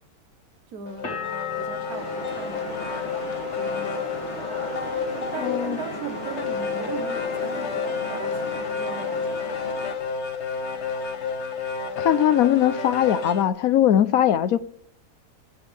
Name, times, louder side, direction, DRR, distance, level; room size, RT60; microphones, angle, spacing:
voice 1, 0.7-4.3 4.6-9.5, right 6 dB, 75° right, 1.5 m, -39 dB
sound 1, 0.9-13.5, left 5 dB, 50° left, 1.4 m, -30 dB
sound 2, 1.0-6.7 7.0-7.7, left 8 dB, 90° left, 3.2 m, -40 dB
sound 3, 1.9-10.0, equal, 30° left, 2.8 m, -37 dB
voice 2, 5.4-5.8 12.0-14.6, left 11 dB, 70° left, 1.1 m, -20 dB
16.0 x 12.0 x 3.4 m
omnidirectional pair, 1.6 m